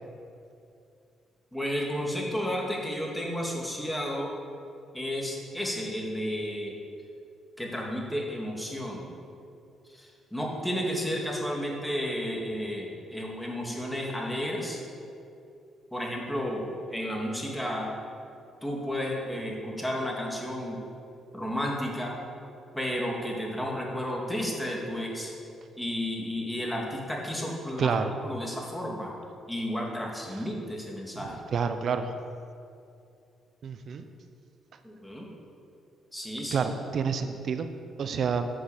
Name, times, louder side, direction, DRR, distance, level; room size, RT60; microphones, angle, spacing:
voice 1, 1.5-4.3 4.9-6.8 7.6-9.0 9.9-14.8 15.9-17.9 18.6-20.8 21.3-22.2 22.7-25.3 25.8-27.9 28.2-29.1 29.5-31.4 34.8-35.3 36.1-36.7, equal, 5° left, -2 dB, 2.3 m, -32 dB
voice 2, 27.8-28.2 31.2-32.1 33.6-34.0 36.5-37.7 38.0-38.5, right 6 dB, 55° right, 9 dB, 0.6 m, -29 dB
9.7 x 6.3 x 7.3 m, 2.5 s
cardioid pair, 90°, 0 cm